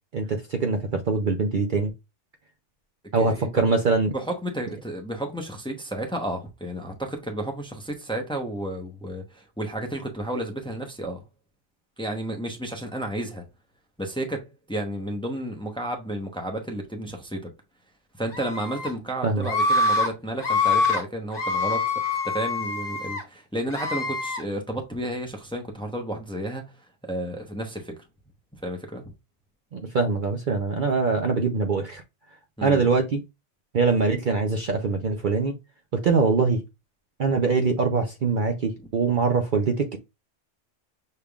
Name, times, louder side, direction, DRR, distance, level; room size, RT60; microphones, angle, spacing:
voice 1, 0.1-1.9 3.1-4.1 19.2-19.5 29.7-32.0 32.6-33.2 33.7-35.6 35.9-36.6 37.2-40.0, right 4 dB, 50° right, 0.7 m, -23 dB
voice 2, 3.1-3.5 4.1-11.2 12.0-13.4 14.0-17.5 18.2-26.6 27.0-27.9 28.6-29.0 32.6-32.9, right 1 dB, 5° left, 0.8 m, -32 dB
Screaming, 18.3-18.9 19.4-20.1 20.4-21.0 21.3-23.2 23.7-24.4, left 3 dB, 40° left, 1.7 m, -25 dB
6.5 x 3.5 x 2.3 m
omnidirectional pair, 1.2 m